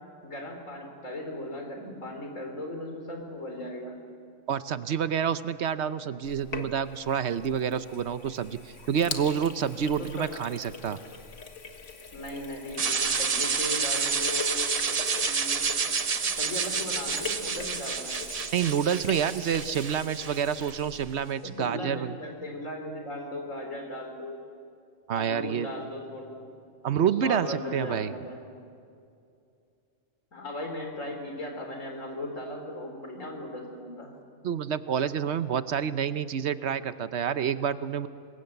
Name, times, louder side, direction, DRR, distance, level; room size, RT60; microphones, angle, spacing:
voice 1, 0.2-4.0 10.0-10.3 12.1-15.9 16.2-18.2 21.4-24.4 25.1-26.5 27.2-28.4 30.3-34.1, left 1 dB, 90° left, 3 dB, 4.3 m, -37 dB
voice 2, 4.5-11.0 18.5-22.1 25.1-25.7 26.8-28.1 34.4-38.1, right 8 dB, 65° right, 13 dB, 1.0 m, -28 dB
Sink (filling or washing), 6.2-21.3, left 4 dB, 70° left, 1.8 m, -42 dB
sound 1, 12.8-20.8, right 5 dB, 35° right, 0.7 m, -29 dB
26.0 x 21.0 x 8.0 m, 2.4 s
omnidirectional pair, 1.3 m